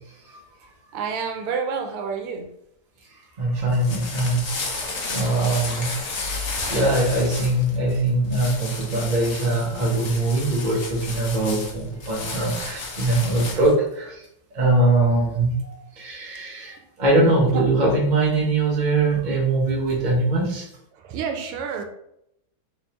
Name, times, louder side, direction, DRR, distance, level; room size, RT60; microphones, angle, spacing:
voice 1, 0.9-2.5 13.4-13.6 17.5-17.6 21.0-21.8, right 6 dB, 85° right, 5 dB, 1.5 m, -29 dB
voice 2, 3.4-6.0 6.7-14.2 14.5-15.6 16.0-20.7, right 2 dB, 45° right, -3 dB, 0.6 m, -22 dB
sound 1, 3.5-13.7, left 3 dB, 75° left, 0.6 m, -33 dB
3.5 x 3.4 x 2.9 m, 0.78 s
omnidirectional pair, 2.3 m